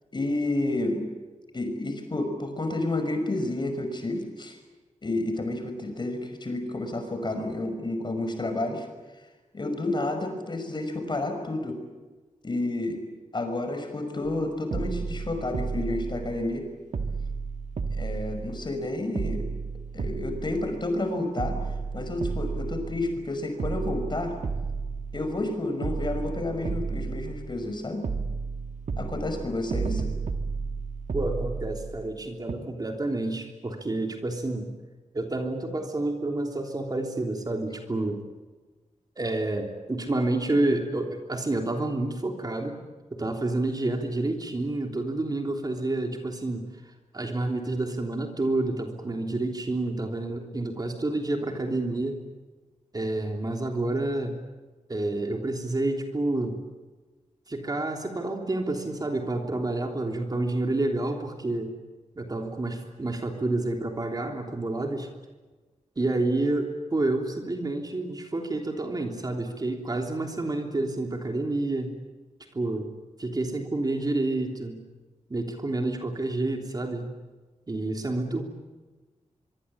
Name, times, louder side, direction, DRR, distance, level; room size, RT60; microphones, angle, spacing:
voice 1, 0.1-1.1 1.5-4.6 5.0-8.9 9.5-11.8 12.4-13.0 13.3-16.7 17.9-19.4 19.9-21.6 21.9-24.4 25.1-28.1 29.0-30.1, left 2 dB, 35° left, 6 dB, 5.7 m, -30 dB
sound 1, 14.2-14.4 14.7-16.6 16.9-18.8 19.2-21.0 21.4-23.3 23.6-25.5 25.8-27.7 28.0-32.2 32.5-32.6, right 4 dB, 70° right, 1.8 m, -32 dB
voice 2, 31.1-34.7 35.1-38.2 39.2-42.8 43.2-46.6 47.1-52.2 52.9-54.3 54.9-56.6 57.5-61.7 62.1-65.1 66.0-71.9 72.5-72.9 73.2-74.8 75.3-77.1 77.7-78.4, right 2 dB, 30° right, 3 dB, 3.3 m, -29 dB
24.5 x 24.5 x 8.7 m, 1.3 s
wide cardioid pair, 135°, 13 cm